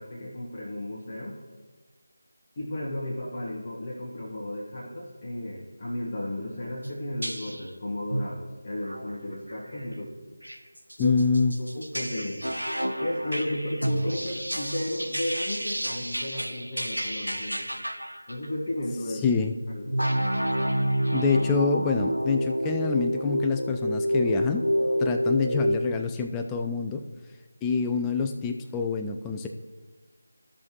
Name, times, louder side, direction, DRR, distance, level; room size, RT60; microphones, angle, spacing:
voice 1, 0.0-1.4 2.6-10.2 11.0-11.2 11.6-12.5 13.0-17.7 18.3-19.2 19.7-19.9, left 1 dB, 30° left, -6 dB, 1.4 m, -34 dB
sound 1, 6.8-6.9 7.2-7.7 8.1-8.4 8.9-9.1 9.5-9.8 10.4-18.5 19.9-25.9, equal, 90° right, 0.7 m, -29 dB
voice 2, 11.0-11.5 19.2-19.5 21.1-24.7 25.0-27.0 27.6-29.5, left 5 dB, 10° left, 4 dB, 0.4 m, -26 dB
15.0 x 5.8 x 2.9 m, 1.3 s
figure-of-eight pair, 160°, 0 cm